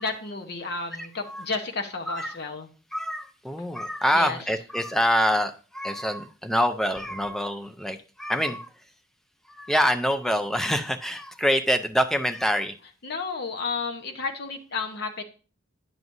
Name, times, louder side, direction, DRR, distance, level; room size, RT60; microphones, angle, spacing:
voice 1, 0.0-2.7 4.1-4.4 13.0-15.2, left 4 dB, 50° left, 4 dB, 0.9 m, -32 dB
voice 2, 1.0-1.4 2.1-2.4 2.9-8.7 9.5-12.7, equal, ahead, 6 dB, 0.4 m, -26 dB
9.3 x 6.0 x 2.6 m, 0.38 s
head